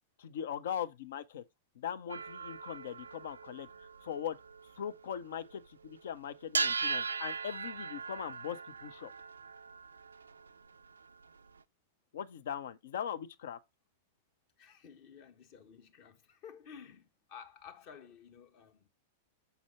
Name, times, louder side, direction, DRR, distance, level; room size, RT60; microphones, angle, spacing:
voice 1, 0.2-1.4 1.8-3.7 4.0-4.4 4.8-9.1 12.1-13.6, left 9 dB, 60° left, 0.6 m, -40 dB
sound 1, 2.1-5.6 5.8-6.0 6.4-11.6, right 4 dB, 75° right, 0.3 m, -39 dB
voice 2, 14.6-18.9, left 7 dB, 45° left, 1.2 m, -53 dB
6.9 x 4.2 x 4.4 m
figure-of-eight pair, 95°, 0 cm